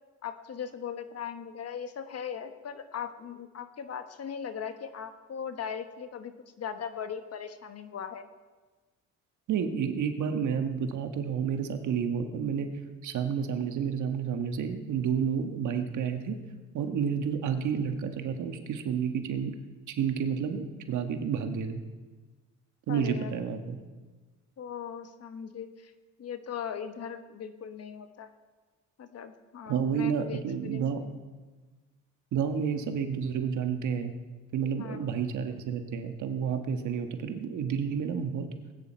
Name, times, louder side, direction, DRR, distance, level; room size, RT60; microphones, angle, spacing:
voice 1, 0.2-6.3 6.6-8.2 22.9-23.3 24.6-25.9 26.2-28.3 29.0-31.1 34.8-35.2, left 7 dB, 55° left, 9 dB, 1.2 m, -39 dB
voice 2, 9.5-12.7 13.0-16.4 16.7-19.5 19.9-21.8 22.9-23.8 29.7-31.0 32.3-34.1 34.5-38.5, right 7 dB, 75° right, 6 dB, 1.4 m, -30 dB
19.0 x 9.4 x 4.4 m, 1.3 s
cardioid pair, 90°, 30 cm